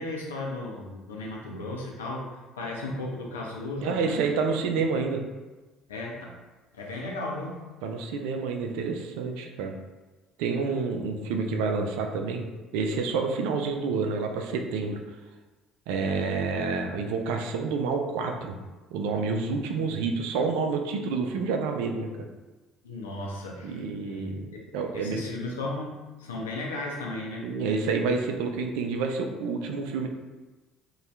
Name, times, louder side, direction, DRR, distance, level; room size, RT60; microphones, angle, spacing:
voice 1, 0.0-4.2 5.9-6.4 6.7-7.6 22.8-24.6 24.9-27.5, left 2 dB, 75° left, -2 dB, 0.5 m, -35 dB
voice 2, 3.8-5.2 7.8-9.7 10.4-12.5 12.7-15.0 15.9-18.6 18.9-22.1 23.6-25.2 27.4-30.1, right 4 dB, 60° right, 3 dB, 0.3 m, -28 dB
2.7 x 2.2 x 3.2 m, 1.2 s
figure-of-eight pair, 55°, 0 cm